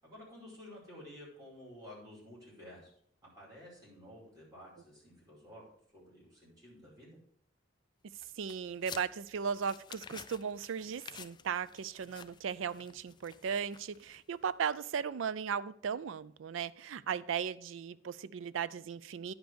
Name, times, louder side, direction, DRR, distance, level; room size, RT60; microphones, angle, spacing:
voice 1, 0.0-2.9 3.2-5.6 5.9-7.2, left 1 dB, 20° right, -6 dB, 4.9 m, -52 dB
sound 1, 8.1-14.4, left 7 dB, 25° left, 0.3 m, -52 dB
voice 2, 8.4-19.3, right 7 dB, 85° right, 18 dB, 0.4 m, -37 dB
10.5 x 5.2 x 6.1 m, 0.64 s
head